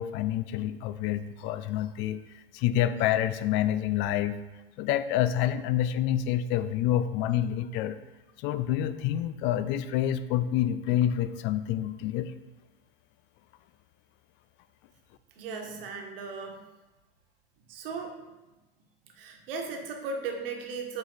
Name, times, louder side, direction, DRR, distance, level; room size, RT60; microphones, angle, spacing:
voice 1, 0.0-2.2 2.5-4.4 4.8-8.0 8.4-12.3, left 11 dB, 40° left, 13 dB, 0.4 m, -27 dB
voice 2, 15.4-16.6 17.7-18.2 19.2-21.0, right 4 dB, 65° right, 2 dB, 1.4 m, -36 dB
8.1 x 3.3 x 4.0 m, 1.1 s
hypercardioid pair, 95°, 30 cm